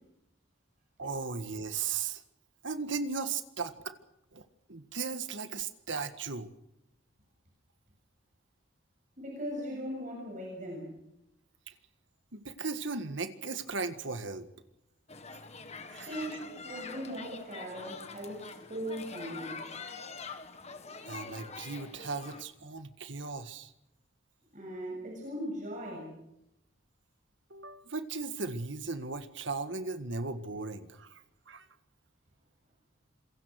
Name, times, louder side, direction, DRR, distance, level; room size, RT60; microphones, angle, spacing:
voice 1, 1.0-2.2 2.6-4.0 4.3-6.5 11.7-11.8 12.3-14.5 15.9-16.4 17.1-17.2 21.1-23.7 27.5-31.7, right 4 dB, 70° right, 10 dB, 1.7 m, -37 dB
voice 2, 9.2-10.9 15.9-19.6 24.5-26.1, equal, 40° right, -1 dB, 7.6 m, -39 dB
sound 1, 15.1-22.4, left 4 dB, 35° left, 1.7 m, -45 dB
27.0 x 23.5 x 6.5 m, 0.85 s
head